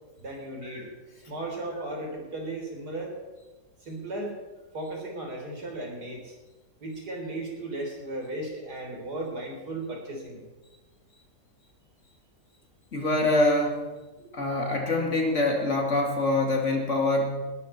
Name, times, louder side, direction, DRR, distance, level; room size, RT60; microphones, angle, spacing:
voice 1, 0.2-0.9 1.3-3.2 3.8-4.4 4.7-6.4 6.8-10.4 14.2-14.3, right 2 dB, 75° right, 1 dB, 4.2 m, -36 dB
voice 2, 12.9-13.9 14.3-17.4, left 2 dB, 45° left, 1 dB, 2.8 m, -25 dB
20.0 x 13.0 x 4.4 m, 1.2 s
omnidirectional pair, 1.7 m